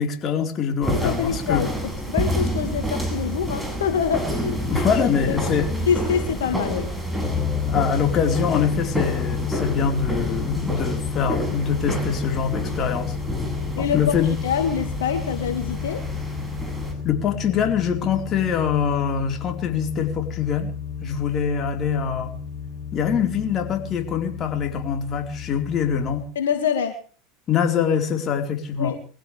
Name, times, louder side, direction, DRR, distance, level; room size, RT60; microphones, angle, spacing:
voice 1, 0.0-1.7 4.7-5.9 7.7-13.1 13.8-14.4 17.0-20.7 21.0-22.3 22.9-26.3 27.5-29.0, left 7 dB, 40° left, 4 dB, 4.5 m, -24 dB
sound 1, 0.8-16.9, right 1 dB, 5° right, 7.2 m, -29 dB
voice 2, 0.9-4.7 5.0-5.4 5.9-6.9 13.8-14.2 14.4-16.0 26.4-26.9 28.8-29.0, left 7 dB, 80° left, 7 dB, 2.1 m, -25 dB
sound 2, 7.2-26.2, left 6 dB, 15° left, 6.0 m, -31 dB
23.5 x 16.0 x 3.5 m, 0.40 s
hypercardioid pair, 85°, 0 cm